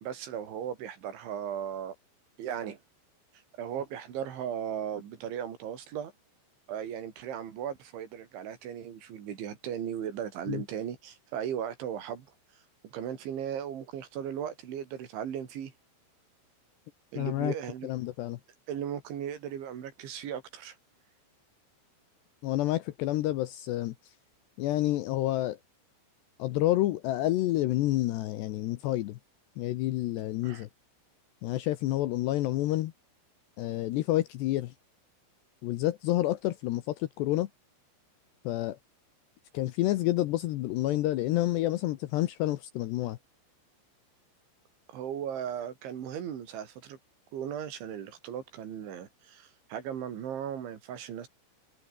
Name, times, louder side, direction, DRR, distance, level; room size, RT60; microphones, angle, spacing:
voice 1, 0.0-1.9 2.4-2.8 3.6-6.1 6.7-12.3 12.8-15.7 17.1-17.9 18.7-20.8 30.4-30.6 44.9-47.0 47.3-51.3, right 9 dB, 70° right, 5.2 m, -37 dB
voice 2, 17.2-17.5 17.8-18.4 22.4-24.1 24.6-25.6 26.4-29.2 29.6-30.7 31.4-32.9 33.6-34.7 35.6-37.5 38.4-38.8 39.5-43.2, left 15 dB, 75° left, 2.7 m, -29 dB
omnidirectional pair, 5.8 m